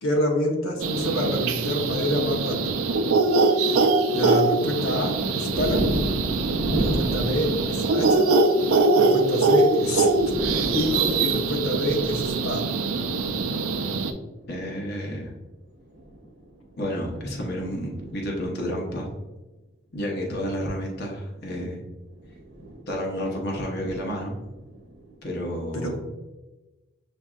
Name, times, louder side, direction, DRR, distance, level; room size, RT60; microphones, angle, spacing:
voice 1, 0.0-2.8 4.1-5.9 6.8-8.3 9.0-10.1 10.7-12.6 25.7-26.0, equal, 85° left, 0 dB, 0.8 m, -27 dB
sound 1, 0.8-14.1, right 3 dB, 90° right, 0.4 m, -23 dB
sound 2, 5.5-8.2 9.5-9.6 9.9-13.5 14.4-14.7 15.8-18.8 20.3-20.4 22.1-22.9 23.7-25.1, right 1 dB, 55° right, 0.7 m, -32 dB
voice 2, 14.5-15.3 16.8-19.1 19.9-21.8 22.9-24.3 25.2-26.0, equal, 50° left, -1 dB, 0.8 m, -30 dB
7.1 x 2.6 x 2.3 m, 1.1 s
head